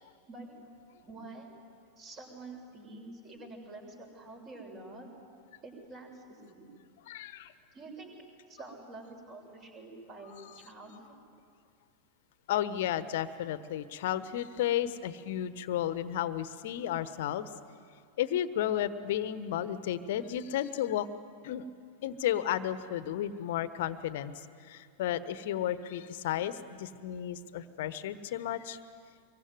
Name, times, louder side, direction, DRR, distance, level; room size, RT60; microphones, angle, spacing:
voice 1, 1.0-1.5 2.0-5.1 5.6-6.7 7.7-8.1 8.5-11.1, right 2 dB, 30° right, 2 dB, 6.7 m, -47 dB
voice 2, 7.1-7.5 10.4-10.5 12.5-17.5 18.2-21.1 21.4-21.6 22.0-28.8, left 11 dB, 55° left, 14 dB, 1.1 m, -33 dB
25.0 x 22.5 x 9.5 m, 2.3 s
figure-of-eight pair, 90°, 0 cm